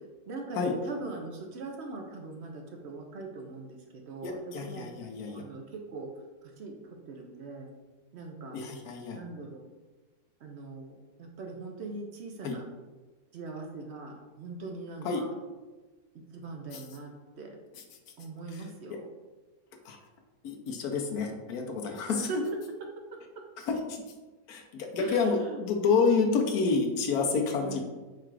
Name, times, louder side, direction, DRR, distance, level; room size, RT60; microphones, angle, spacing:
voice 1, 0.3-4.9 5.3-6.1 6.4-6.8 7.1-7.7 8.1-8.6 9.1-9.7 10.4-12.7 13.3-15.3 16.3-17.1 17.4-17.6 18.2-19.1 22.1-22.4 25.0-25.6 27.6-27.8, right 3 dB, 60° right, 2 dB, 0.7 m, -41 dB
voice 2, 4.2-5.4 8.5-9.2 12.4-12.6 15.0-15.2 16.7-16.8 18.5-18.6 19.9-20.0 20.4-22.3 23.7-24.0 24.5-27.8, left 4 dB, 80° left, 3 dB, 1.1 m, -28 dB
4.8 x 2.4 x 4.6 m, 1.2 s
omnidirectional pair, 1.6 m